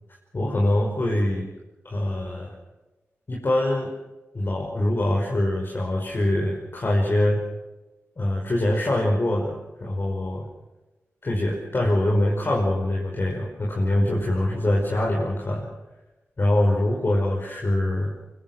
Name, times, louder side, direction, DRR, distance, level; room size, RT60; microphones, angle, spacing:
voice 1, 0.3-1.5 1.8-2.5 3.3-3.9 4.3-7.4 8.2-10.4 11.2-15.7 16.4-18.1, left 1 dB, 45° left, -2 dB, 5.6 m, -24 dB
24.5 x 23.0 x 6.4 m, 1.1 s
cardioid pair, 70°, 5 cm